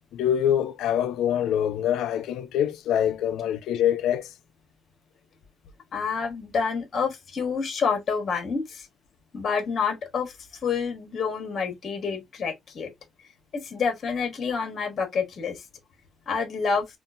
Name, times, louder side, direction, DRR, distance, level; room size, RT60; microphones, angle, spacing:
voice 1, 0.1-4.3, left 10 dB, 85° left, 0.4 m, -25 dB
voice 2, 5.9-8.9 9.3-12.9 13.5-15.6 16.3-16.9, left 5 dB, 50° left, 1.2 m, -28 dB
3.7 x 2.4 x 2.5 m
cardioid pair, 90°, 0 cm